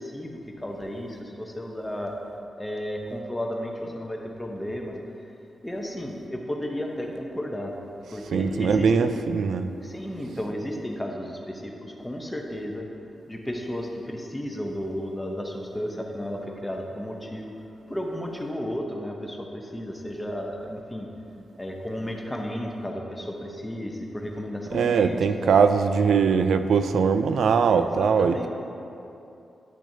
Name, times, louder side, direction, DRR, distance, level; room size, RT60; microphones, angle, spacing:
voice 1, 0.0-2.2 2.6-5.0 5.6-7.8 8.1-9.1 9.8-12.9 13.3-17.5 17.9-21.1 21.6-25.5 27.7-28.5, equal, 10° left, 0 dB, 0.7 m, -33 dB
voice 2, 8.3-9.7 24.7-28.5, right 6 dB, 80° right, 9 dB, 0.3 m, -21 dB
10.0 x 6.1 x 2.7 m, 2.8 s
wide cardioid pair, 150°, 0 cm